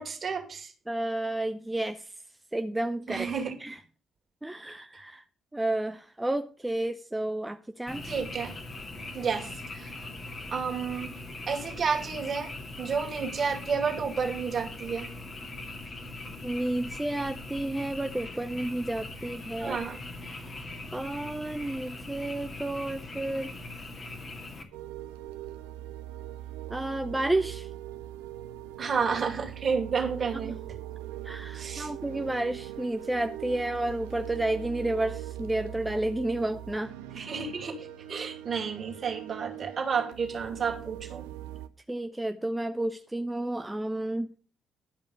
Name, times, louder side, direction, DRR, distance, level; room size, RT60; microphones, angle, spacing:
voice 1, 0.0-0.7 3.1-3.6 8.0-8.6 9.1-10.1 10.5-11.1 11.5-12.5 12.8-15.1 19.6-20.0 28.8-30.6 31.5-31.9 37.1-41.2, right 5 dB, 45° right, 3 dB, 2.5 m, -31 dB
voice 2, 0.9-2.1 2.5-3.3 3.6-3.8 4.4-5.2 5.5-8.1 16.4-19.8 20.3-20.6 20.9-23.5 26.7-27.7 30.4-30.5 31.2-36.9 41.9-44.3, right 1 dB, 10° right, 8 dB, 0.7 m, -31 dB
Frog, 7.9-24.6, left 2 dB, 40° left, 2.6 m, -41 dB
sound 1, 24.7-41.7, right 13 dB, 80° right, 0.6 m, -41 dB
12.0 x 5.3 x 7.0 m, 0.39 s
hypercardioid pair, 45°, 0 cm